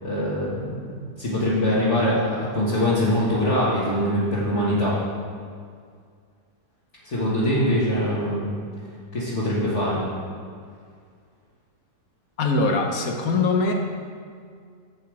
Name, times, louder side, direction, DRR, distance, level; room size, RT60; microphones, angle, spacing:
voice 1, 0.0-5.0 7.0-8.6 9.1-10.0, left 1 dB, 45° left, -9 dB, 1.8 m, -23 dB
voice 2, 12.4-13.7, left 3 dB, 65° left, 3 dB, 1.3 m, -22 dB
7.8 x 7.5 x 4.9 m, 2.1 s
omnidirectional pair, 1.8 m